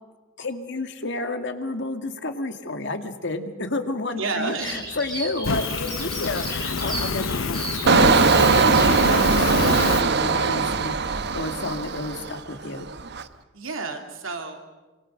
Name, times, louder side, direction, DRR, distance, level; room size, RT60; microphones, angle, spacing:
voice 1, 0.4-12.9, left 2 dB, 60° left, 7 dB, 2.1 m, -31 dB
voice 2, 4.1-4.9 13.5-14.6, right 3 dB, 90° right, 4 dB, 3.0 m, -30 dB
Bird vocalization bird call bird song, 4.6-9.8, right 2 dB, 20° right, 5.9 m, -35 dB
Fire, 5.4-10.0, left 4 dB, 80° left, 0.8 m, -27 dB
Engine, 7.9-12.5 12.9-13.2, right 4 dB, 55° right, 1.0 m, -20 dB
26.0 x 25.0 x 6.6 m, 1.2 s
head